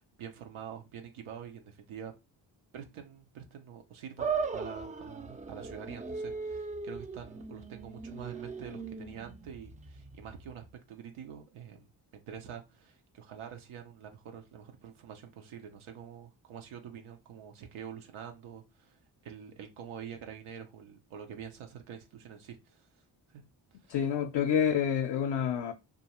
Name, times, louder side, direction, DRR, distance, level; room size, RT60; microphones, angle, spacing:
voice 1, 0.0-2.1 2.7-23.0 23.3-23.4 23.7-23.9, right 8 dB, 85° right, 0.6 m, -46 dB
sound 1, 4.2-10.6, right 5 dB, 15° right, 0.3 m, -38 dB
voice 2, 23.9-25.7, left 8 dB, 60° left, 0.5 m, -28 dB
2.5 x 2.3 x 2.8 m
cardioid pair, 45°, 48 cm